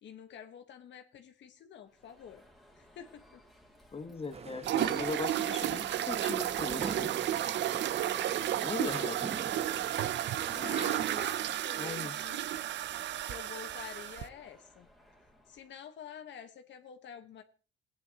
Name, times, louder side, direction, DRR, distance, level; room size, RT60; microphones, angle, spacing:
voice 1, 0.0-2.4 2.7-3.4 8.3-8.9 10.5-12.5 13.2-14.9 15.5-17.4, left 8 dB, 65° left, 7 dB, 1.1 m, -48 dB
Alarm, 1.9-15.8, equal, ahead, 2.3 m, -59 dB
voice 2, 3.9-7.1 8.6-9.3 11.8-12.3, left 4 dB, 30° left, 7 dB, 1.1 m, -39 dB
sound 1, 4.3-11.2, right 5 dB, 30° right, 0.8 m, -43 dB
sound 2, 4.6-14.3, right 12 dB, 65° right, 0.5 m, -33 dB
16.5 x 9.6 x 2.8 m, 0.38 s
cardioid pair, 90°, 20 cm